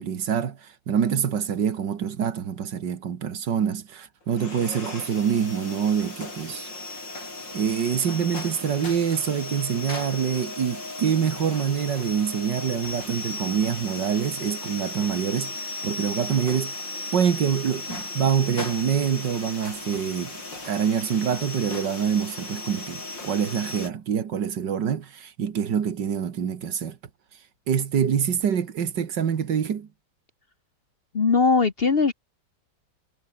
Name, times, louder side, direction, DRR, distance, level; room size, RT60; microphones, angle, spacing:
voice 1, 0.0-6.7 7.5-16.8 17.1-20.4 20.7-27.0 27.7-29.9, right 8 dB, 75° right, 2.2 m, -26 dB
sound 1, 4.3-23.9, left 2 dB, 90° left, 7.3 m, -36 dB
voice 2, 31.1-32.1, left 4 dB, 35° left, 1.2 m, -20 dB
omnidirectional pair, 1.9 m